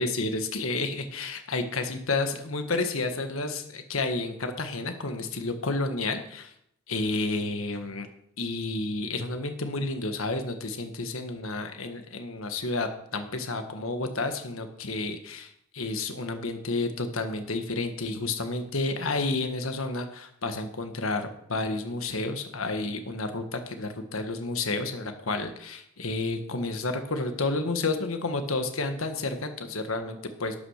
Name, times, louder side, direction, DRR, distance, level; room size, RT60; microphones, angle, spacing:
voice 1, 0.0-6.5 6.9-8.1 8.4-30.6, left 3 dB, 75° left, 7 dB, 1.6 m, -31 dB
12.5 x 8.8 x 6.6 m, 0.72 s
head